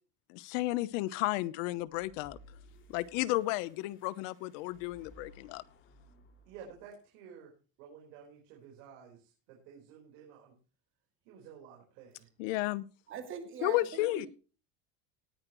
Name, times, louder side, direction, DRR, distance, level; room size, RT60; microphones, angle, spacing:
voice 1, 0.3-2.4 2.9-5.6 12.4-12.9 13.6-14.3, left 18 dB, 80° left, 18 dB, 1.0 m, -33 dB
sound 1, 1.9-7.0, left 1 dB, 30° left, 2.7 m, -59 dB
voice 2, 6.5-7.5 7.8-10.5 11.2-12.3, right 7 dB, 85° right, 0 dB, 4.5 m, -52 dB
voice 3, 13.1-14.3, right 7 dB, 35° right, 7 dB, 2.6 m, -42 dB
18.5 x 10.0 x 3.1 m, 0.35 s
cardioid pair, 165°, 37 cm